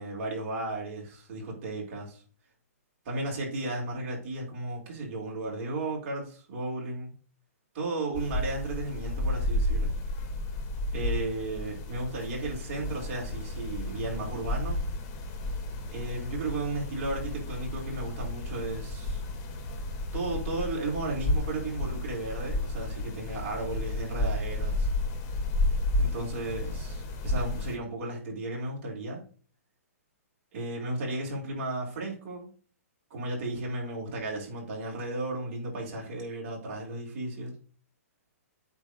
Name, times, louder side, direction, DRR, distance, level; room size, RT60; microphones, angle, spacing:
voice 1, 0.0-2.2 3.0-7.1 7.7-9.9 10.9-14.8 15.9-19.2 20.1-24.9 26.0-29.2 30.5-32.5 33.1-37.5, right 2 dB, 45° right, -2 dB, 4.2 m, -34 dB
sound 1, 8.1-27.8, left 1 dB, 35° left, 2.2 m, -32 dB
8.6 x 3.7 x 6.2 m, 0.41 s
hypercardioid pair, 145°, 8 cm